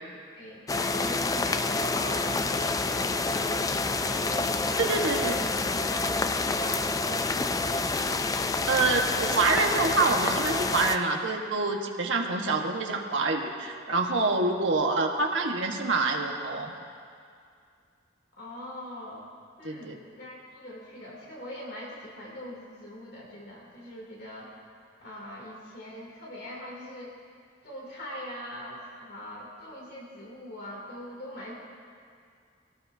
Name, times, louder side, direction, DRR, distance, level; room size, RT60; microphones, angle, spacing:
voice 1, 0.4-5.5 5.9-8.4 15.0-15.3 18.3-19.3 19.6-24.5 25.0-27.1 27.6-31.5, left 1 dB, 55° left, -4 dB, 3.0 m, -42 dB
sound 1, 0.7-11.0, left 3 dB, 20° left, 0.4 m, -28 dB
voice 2, 4.8-5.5 8.7-16.7 19.6-19.9, right 3 dB, 75° right, 1 dB, 1.4 m, -26 dB
21.5 x 17.5 x 2.8 m, 2.2 s
head